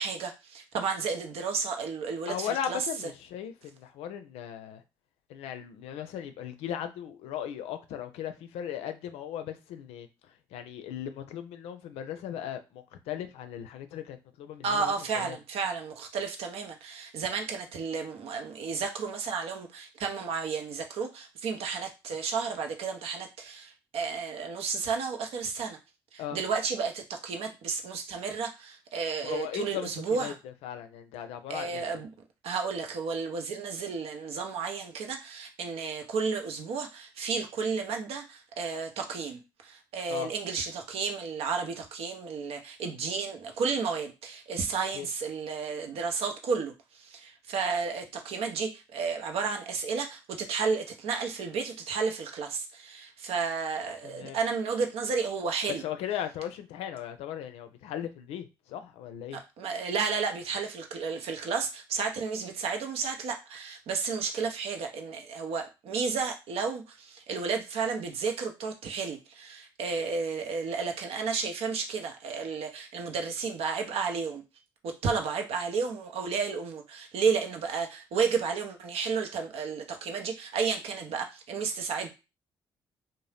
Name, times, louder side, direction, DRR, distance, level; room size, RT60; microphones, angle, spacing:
voice 1, 0.0-2.9 14.6-25.8 26.1-30.4 31.5-32.1 32.4-55.8 59.3-74.4 74.8-82.1, right 5 dB, 70° right, 0.7 m, -32 dB
voice 2, 2.3-4.8 5.3-10.1 10.5-15.4 26.2-26.4 29.2-31.9 40.1-40.3 44.9-45.1 54.0-54.4 55.8-59.4, left 10 dB, 80° left, 0.4 m, -37 dB
2.7 x 2.1 x 3.3 m
supercardioid pair, 55°, 10 cm